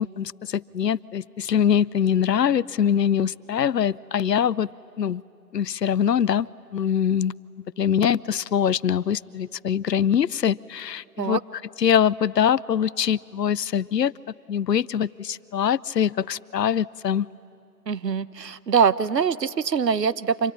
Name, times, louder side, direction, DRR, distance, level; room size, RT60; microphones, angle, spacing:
voice 1, 0.0-4.7 5.0-5.2 5.5-6.5 6.7-7.3 7.8-11.4 11.8-14.1 14.5-17.3, left 8 dB, 85° left, 20 dB, 0.7 m, -23 dB
voice 2, 17.9-20.5, right 6 dB, 85° right, 16 dB, 1.0 m, -23 dB
26.0 x 23.0 x 9.8 m, 2.6 s
hypercardioid pair, 175°, 48 cm